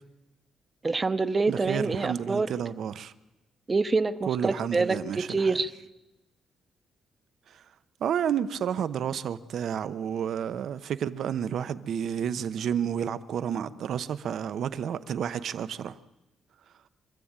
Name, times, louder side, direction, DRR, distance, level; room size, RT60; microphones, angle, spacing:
voice 1, 0.8-2.5 3.7-5.7, right 3 dB, 20° right, 0.8 m, -26 dB
voice 2, 1.5-3.1 4.3-5.5 7.5-7.6 8.0-16.0, right 8 dB, 60° right, 0.9 m, -30 dB
26.0 x 14.0 x 8.9 m
cardioid pair, 155°, 0 cm